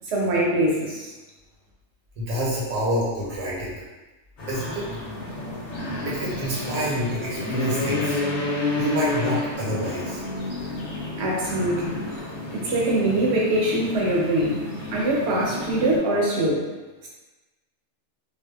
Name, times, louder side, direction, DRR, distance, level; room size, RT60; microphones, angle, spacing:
voice 1, 0.1-1.1 11.2-12.0 12.5-14.6 14.9-16.6, right 1 dB, 65° right, -4 dB, 0.9 m, -23 dB
voice 2, 2.2-3.7 4.5-4.9 6.0-8.2 8.8-10.2, equal, 90° right, -6 dB, 1.2 m, -27 dB
sound 1, 4.4-16.0, left 2 dB, 65° left, 1.0 m, -30 dB
2.6 x 2.1 x 2.2 m, 1.2 s
omnidirectional pair, 1.3 m